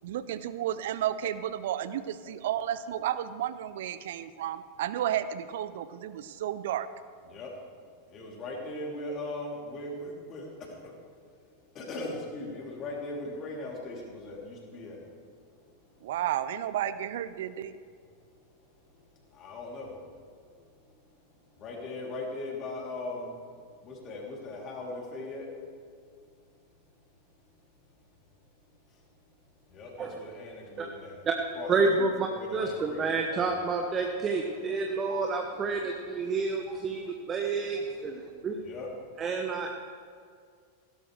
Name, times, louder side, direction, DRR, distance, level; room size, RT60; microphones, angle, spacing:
voice 1, 0.0-6.9 16.0-17.7, right 11 dB, 55° right, 14 dB, 0.5 m, -32 dB
voice 2, 8.1-10.5 10.8-10.9 11.7-15.0 19.4-19.9 21.6-23.3 23.8-25.5 29.7-31.2 31.5-31.7 32.3-33.2 38.6-38.9, left 2 dB, 30° left, -2 dB, 3.2 m, -39 dB
voice 3, 31.7-38.6 39.2-39.7, right 4 dB, 25° right, 3 dB, 0.9 m, -29 dB
16.5 x 13.0 x 3.3 m, 2.1 s
figure-of-eight pair, 90°, 0 cm